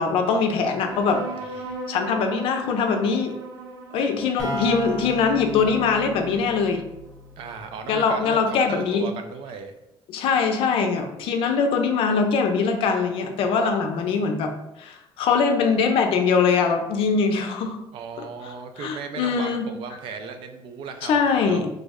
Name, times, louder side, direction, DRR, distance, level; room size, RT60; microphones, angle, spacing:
voice 1, 0.0-1.2 1.9-3.3 3.9-6.8 7.9-9.1 10.1-14.5 14.8-17.8 18.4-19.7 21.0-21.7, left 5 dB, 70° left, 5 dB, 0.5 m, -22 dB
sound 1, 0.6-7.6, right 2 dB, 80° right, 1.1 m, -39 dB
sound 2, 4.4-8.0, equal, 5° left, 0.8 m, -35 dB
voice 2, 7.4-9.7 17.9-21.2 21.4-21.7, right 5 dB, 65° right, 7 dB, 0.4 m, -36 dB
3.2 x 2.0 x 3.5 m, 0.87 s
cardioid pair, 160°, 10 cm